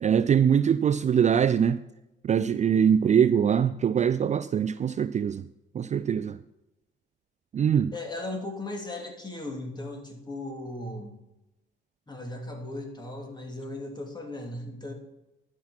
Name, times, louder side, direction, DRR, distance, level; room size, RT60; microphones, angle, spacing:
voice 1, 0.0-1.8 2.2-5.4 5.7-6.4 7.5-7.9, right 8 dB, 35° right, 0.4 m, -23 dB
voice 2, 7.9-11.2 12.1-14.9, left 2 dB, 20° left, 2.8 m, -37 dB
12.0 x 5.9 x 5.9 m
cardioid pair, 90°, 20 cm